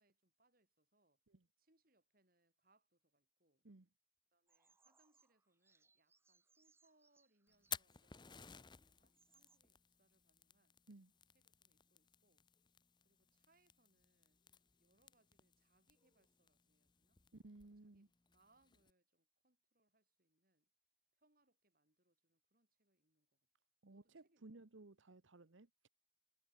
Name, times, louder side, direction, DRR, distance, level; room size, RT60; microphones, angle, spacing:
voice 1, 0.0-1.2 1.6-3.7 4.3-10.8 11.3-12.5 13.0-17.2 17.6-20.7 21.1-23.4 23.9-24.7, right 2 dB, 45° right, 5.9 m, -80 dB
Bird vocalization bird call bird song, 4.5-8.0 8.7-8.8 9.0-9.6, right 4 dB, 15° right, 1.6 m, -76 dB
Fire, 7.5-18.9, left 8 dB, 25° left, 0.8 m, -56 dB
voice 2, 17.3-18.1 23.8-25.9, right 2 dB, 85° right, 1.1 m, -59 dB
head